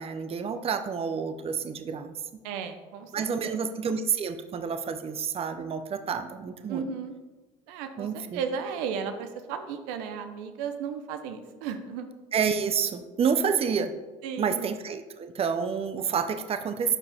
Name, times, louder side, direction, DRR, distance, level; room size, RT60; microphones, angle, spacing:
voice 1, 0.0-2.1 3.1-6.9 8.0-8.4 12.3-13.9 14.4-17.0, right 6 dB, 35° right, 9 dB, 0.7 m, -29 dB
voice 2, 2.4-3.7 6.7-7.1 7.7-12.1 14.2-14.7, right 6 dB, 80° right, 8 dB, 0.8 m, -35 dB
12.0 x 4.7 x 3.5 m, 1.2 s
supercardioid pair, 80°, 16 cm